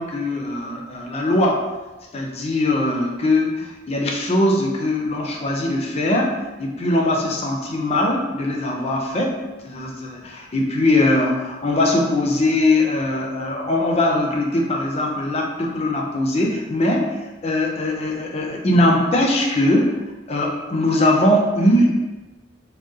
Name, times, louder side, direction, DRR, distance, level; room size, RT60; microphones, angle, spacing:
voice 1, 0.0-1.6 2.1-17.1 17.4-20.0 20.3-21.9, left 1 dB, 35° left, 1 dB, 0.4 m, -21 dB
3.5 x 2.1 x 2.7 m, 1.1 s
head